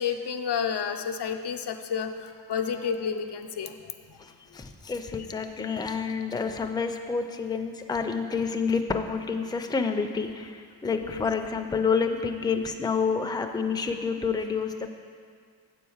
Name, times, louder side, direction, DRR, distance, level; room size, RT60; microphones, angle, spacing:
voice 1, 0.0-4.3 11.0-11.2, left 7 dB, 90° left, 6 dB, 0.6 m, -31 dB
voice 2, 4.2-14.9, left 5 dB, 10° left, 5 dB, 0.4 m, -29 dB
7.8 x 4.6 x 7.1 m, 2.1 s
wide cardioid pair, 130°, 39 cm